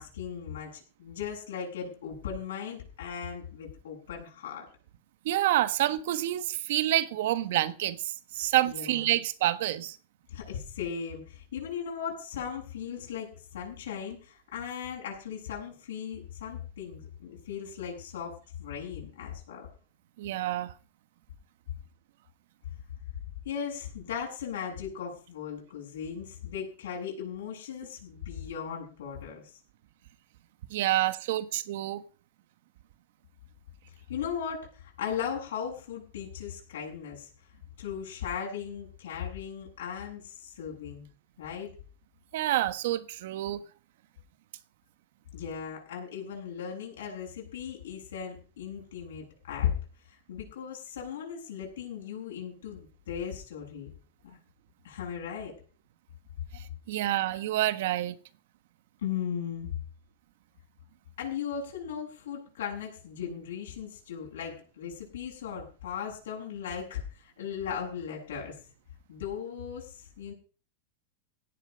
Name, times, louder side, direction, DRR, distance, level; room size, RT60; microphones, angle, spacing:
voice 1, 0.0-4.7 8.4-9.2 10.3-19.7 23.4-29.6 34.1-37.3 37.8-41.1 41.4-41.7 45.3-49.7 50.0-53.9 54.2-54.4 54.8-55.5 57.3-57.4 59.0-59.7 61.2-68.6 69.1-70.3, left 8 dB, 85° left, 7.8 m, -37 dB
voice 2, 5.2-10.0 20.2-20.7 30.7-32.0 42.3-43.6 56.5-58.1, right 14 dB, 60° right, 1.3 m, -28 dB
17.0 x 11.5 x 5.3 m
supercardioid pair, 170°, 0 cm